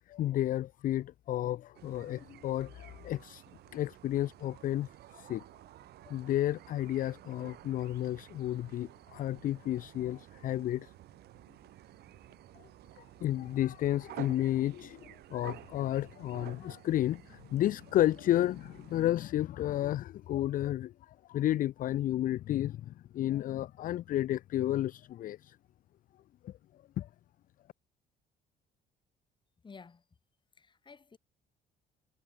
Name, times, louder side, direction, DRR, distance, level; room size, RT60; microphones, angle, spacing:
voice 1, 0.1-3.4 3.7-5.4 6.1-10.9 13.2-15.0 15.3-20.9 21.3-25.6 26.4-26.5 27.0-27.1, left 13 dB, 55° left, 0.5 m, -32 dB
sound 1, 1.7-19.1, right 15 dB, 75° right, 3.9 m, -52 dB
voice 2, 29.6-30.0 30.6-31.2, left 5 dB, 30° left, 4.3 m, -52 dB
cardioid pair, 110°, 17 cm